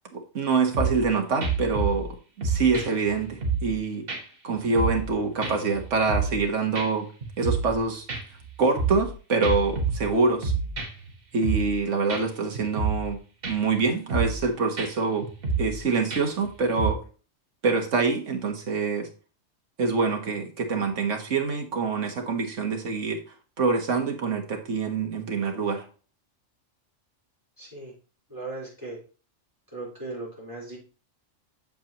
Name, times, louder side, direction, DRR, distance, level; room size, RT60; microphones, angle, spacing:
voice 1, 0.1-2.1 2.4-4.1 4.4-7.1 7.4-8.1 8.6-10.5 11.3-15.3 15.6-17.0 17.6-19.1 19.8-23.2 23.6-25.9, right 4 dB, 70° right, 3 dB, 1.7 m, -25 dB
sound 1, 0.7-1.1 1.4-2.1 2.4-3.8 4.1-4.2 4.5-5.1 5.4-6.5 6.8-6.9 7.2-7.8 8.1-9.1 9.4-11.1 11.4-11.8 12.1-12.2 12.6-13.1 13.4-13.8 14.1-14.5 14.8-14.9 15.2-15.8 16.1-16.4 16.8-16.9, right 4 dB, 45° right, 1.7 m, -29 dB
voice 2, 27.6-27.9 28.3-29.0 29.7-30.8, right 2 dB, 15° right, -4 dB, 4.1 m, -37 dB
8.3 x 7.0 x 3.0 m, 0.37 s
omnidirectional pair, 1.3 m